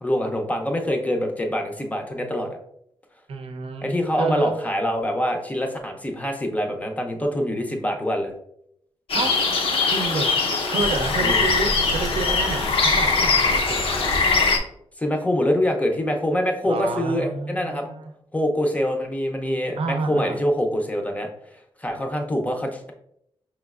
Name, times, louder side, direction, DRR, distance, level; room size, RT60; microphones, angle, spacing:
voice 1, 0.0-2.6 3.8-8.3 11.2-11.5 15.0-17.8 18.3-21.3 21.8-22.9, equal, 15° left, 2 dB, 0.5 m, -25 dB
voice 2, 3.3-4.6 9.1-9.3 9.9-13.8 16.6-18.1 19.8-20.5, right 4 dB, 75° right, 6 dB, 0.6 m, -29 dB
sound 1, 9.1-14.6, left 4 dB, 65° left, 0.6 m, -21 dB
5.1 x 3.1 x 2.3 m, 0.75 s
wide cardioid pair, 110°, 10 cm